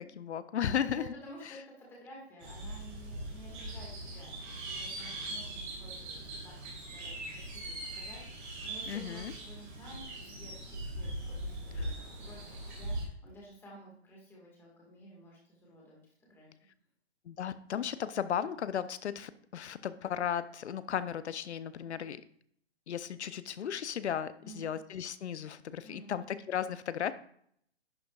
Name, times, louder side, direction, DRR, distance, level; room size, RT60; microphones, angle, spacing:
voice 1, 0.2-1.1 8.9-9.3 11.8-12.0 17.3-22.2 22.9-27.1, left 8 dB, 80° left, 14 dB, 0.7 m, -35 dB
voice 2, 0.9-6.2 6.4-16.5 24.4-24.7 25.8-26.2, right 1 dB, 5° left, -3 dB, 1.7 m, -53 dB
sound 1, 2.4-13.1, right 1 dB, 45° right, 3.4 m, -41 dB
sound 2, 11.7-12.9, left 2 dB, 30° left, 2.6 m, -60 dB
11.0 x 6.3 x 2.4 m, 0.66 s
hypercardioid pair, 160°, 33 cm